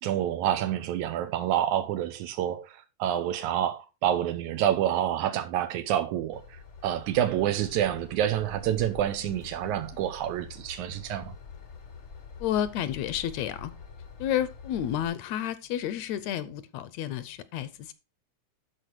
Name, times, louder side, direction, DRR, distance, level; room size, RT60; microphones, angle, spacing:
voice 1, 0.0-11.3, right 11 dB, 85° right, 2.2 m, -28 dB
Train / Engine, 6.3-15.1, left 5 dB, 55° left, 0.7 m, -46 dB
voice 2, 12.4-13.7 14.2-17.9, left 10 dB, 75° left, 1.8 m, -31 dB
12.5 x 4.7 x 4.6 m
omnidirectional pair, 3.4 m